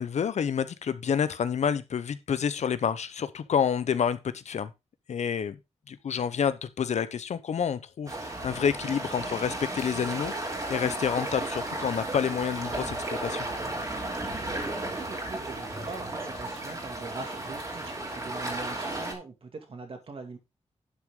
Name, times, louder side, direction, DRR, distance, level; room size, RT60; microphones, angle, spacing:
voice 1, 0.0-4.7 5.1-5.6 5.9-13.5, left 7 dB, 85° left, 0.9 m, -29 dB
sound 1, 8.1-19.1, right 2 dB, 30° right, 2.8 m, -34 dB
voice 2, 14.9-20.4, right 3 dB, 55° right, 2.4 m, -42 dB
11.0 x 6.2 x 3.7 m
wide cardioid pair, 150°, 11 cm